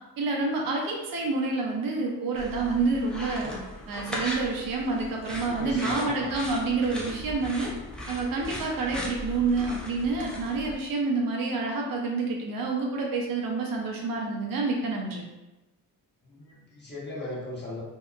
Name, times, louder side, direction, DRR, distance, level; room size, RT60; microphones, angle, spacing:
voice 1, 0.2-3.5 3.9-7.7 8.1-15.2, right 3 dB, 65° right, 0 dB, 0.6 m, -28 dB
sound 1, 2.4-10.8, left 1 dB, ahead, 0.4 m, -38 dB
voice 2, 5.4-6.3 16.2-17.8, left 1 dB, 30° left, -6 dB, 0.9 m, -37 dB
2.7 x 2.1 x 2.4 m, 1.0 s
cardioid pair, 90°, 37 cm